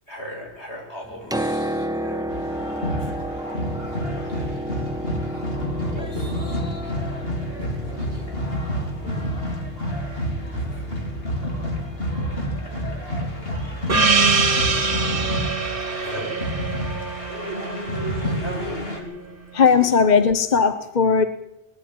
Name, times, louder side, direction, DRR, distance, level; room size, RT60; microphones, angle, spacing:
voice 1, 0.1-2.6 2.9-3.6 3.9-4.7 5.8-7.1 7.6-9.4 10.3-11.3 12.7-13.1 13.4-13.6 14.1-16.8 18.1-19.6, equal, 75° left, 0 dB, 7.2 m, -40 dB
Piano, 1.0-14.8 15.9-16.0, right 1 dB, 5° right, 0.7 m, -33 dB
sound 1, 2.3-19.0, equal, 60° left, 4.2 m, -29 dB
Gong, 13.9-18.7, right 4 dB, 55° right, 1.7 m, -23 dB
voice 2, 19.5-21.2, left 5 dB, 40° left, 9 dB, 1.2 m, -17 dB
21.0 x 14.0 x 9.2 m, 0.89 s
omnidirectional pair, 1.1 m